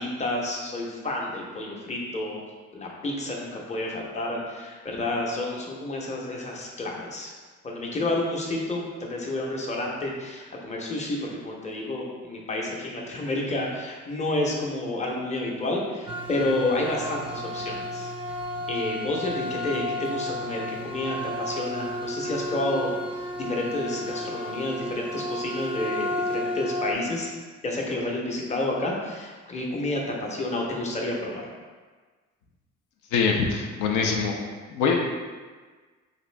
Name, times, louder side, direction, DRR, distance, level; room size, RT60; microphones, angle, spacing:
voice 1, 0.0-2.4 2.7-7.3 7.6-18.1 18.7-27.3 27.6-31.5, left 2 dB, 25° left, -2 dB, 0.6 m, -30 dB
sound 1, 16.1-26.9, left 1 dB, 20° right, 0.3 m, -32 dB
voice 2, 33.1-34.4 34.7-35.1, left 5 dB, 85° left, 1 dB, 0.5 m, -24 dB
2.9 x 2.6 x 3.2 m, 1.4 s
cardioid pair, 90°, 30 cm